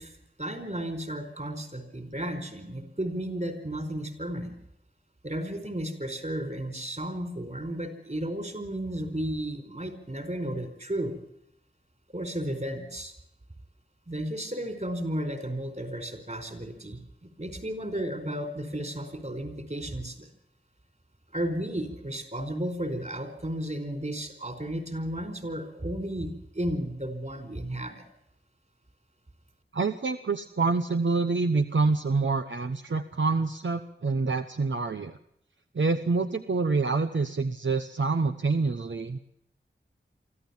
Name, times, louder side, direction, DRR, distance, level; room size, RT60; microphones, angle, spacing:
voice 1, 0.0-4.5 5.2-11.2 12.1-13.1 14.1-17.0 17.4-20.3 21.3-28.1, right 1 dB, 40° right, 8 dB, 4.8 m, -33 dB
voice 2, 29.7-35.2 35.7-39.2, right 3 dB, 75° right, 7 dB, 1.1 m, -27 dB
24.5 x 14.5 x 7.3 m, 0.76 s
wide cardioid pair, 65°, 20 cm